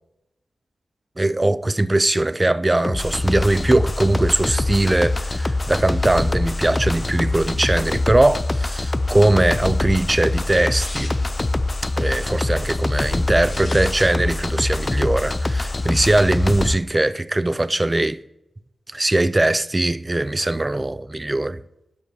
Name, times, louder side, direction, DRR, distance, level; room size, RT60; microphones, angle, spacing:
voice 1, 1.2-11.1 12.0-18.2 18.9-21.6, right 2 dB, 25° right, 0.4 m, -20 dB
sound 1, 2.8-16.8, left 2 dB, 35° left, 0.4 m, -24 dB
sound 2, 10.7-11.4 13.3-14.1 15.8-16.2, left 2 dB, 55° left, 2.0 m, -37 dB
12.0 x 5.1 x 3.1 m
cardioid pair, 40°, 0 cm